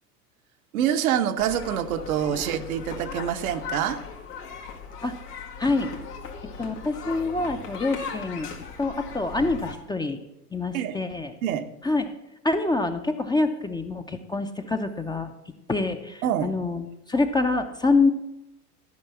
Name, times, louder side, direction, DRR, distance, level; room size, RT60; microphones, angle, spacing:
voice 1, 0.7-4.0 10.7-11.0 11.4-11.7 16.2-16.5, right 10 dB, 65° right, 7 dB, 1.0 m, -26 dB
sound 1, 1.4-9.7, left 6 dB, 80° left, 2.1 m, -38 dB
voice 2, 5.6-5.9 6.6-8.5 8.8-10.2 10.5-11.3 11.8-12.1 12.4-15.3 15.7-18.1, left 3 dB, 10° left, 6 dB, 0.7 m, -26 dB
12.5 x 5.4 x 7.0 m, 0.91 s
hypercardioid pair, 90°, 46 cm